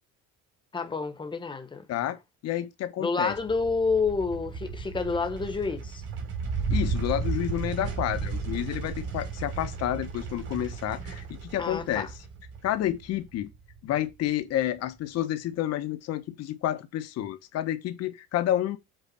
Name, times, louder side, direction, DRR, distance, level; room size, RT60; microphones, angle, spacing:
voice 1, 0.7-1.8 3.0-6.0 11.6-12.1, left 4 dB, 15° left, 1.2 m, -29 dB
voice 2, 2.4-3.3 6.7-12.1 12.6-13.5 13.8-18.8, left 12 dB, 55° left, 1.3 m, -30 dB
sound 1, 3.3-13.9, right 4 dB, 55° right, 3.4 m, -34 dB
8.1 x 4.0 x 5.5 m
cardioid pair, 140°, 29 cm